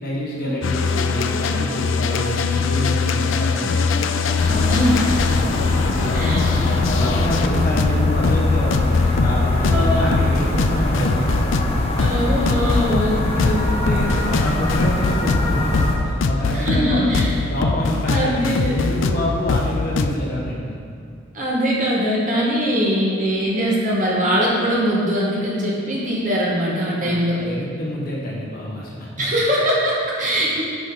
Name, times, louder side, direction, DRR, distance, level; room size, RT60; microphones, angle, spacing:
voice 1, 0.0-3.9 5.2-11.4 13.3-15.7 16.0-20.8 27.0-29.3 30.2-30.3, equal, 50° left, -5 dB, 1.6 m, -27 dB
sound 1, 0.6-20.1, left 4 dB, 80° left, 0.4 m, -22 dB
sound 2, 4.4-16.0, left 1 dB, 30° left, 0.9 m, -24 dB
voice 2, 4.4-5.1 6.1-6.4 9.7-10.2 12.0-14.1 16.5-17.3 18.1-18.7 21.3-27.4 29.2-30.6, equal, 40° right, -5 dB, 1.7 m, -21 dB
10.0 x 5.4 x 4.0 m, 2.3 s
head